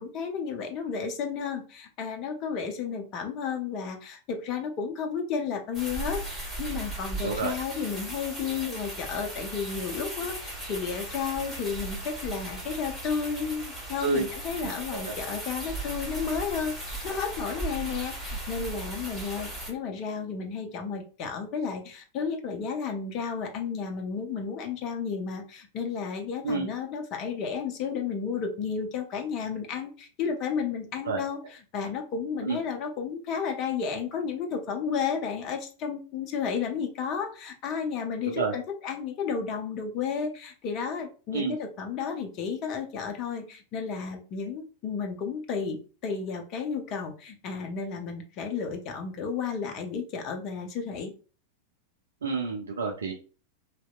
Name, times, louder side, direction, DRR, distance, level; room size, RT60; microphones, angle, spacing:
voice 1, 0.0-51.1, left 6 dB, 40° left, 4 dB, 0.5 m, -32 dB
sound 1, 5.7-19.7, right 2 dB, ahead, 1.4 m, -37 dB
voice 2, 7.2-7.5 14.0-14.2 14.6-15.1 26.4-26.7 31.1-31.2 32.4-32.6 38.4-38.5 41.3-41.6 52.2-53.1, right 4 dB, 65° right, 0 dB, 0.3 m, -29 dB
2.7 x 2.0 x 2.3 m, 0.37 s
figure-of-eight pair, 90°, 0 cm